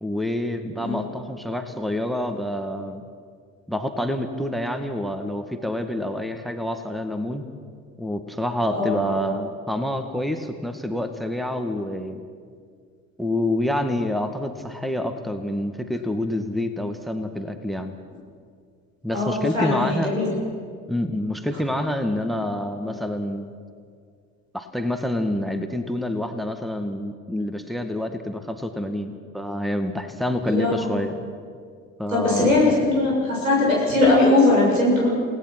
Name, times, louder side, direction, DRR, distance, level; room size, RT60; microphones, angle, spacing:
voice 1, 0.0-3.0 3.7-7.5 8.0-12.2 13.2-17.9 19.0-20.1 20.9-23.5 24.5-31.2 32.0-32.6, left 1 dB, ahead, 8 dB, 1.9 m, -27 dB
voice 2, 8.7-9.1 19.1-20.4 30.5-31.0 32.1-35.1, left 2 dB, 85° right, -4 dB, 7.2 m, -20 dB
29.0 x 18.5 x 6.1 m, 2.1 s
figure-of-eight pair, 50°, 40 cm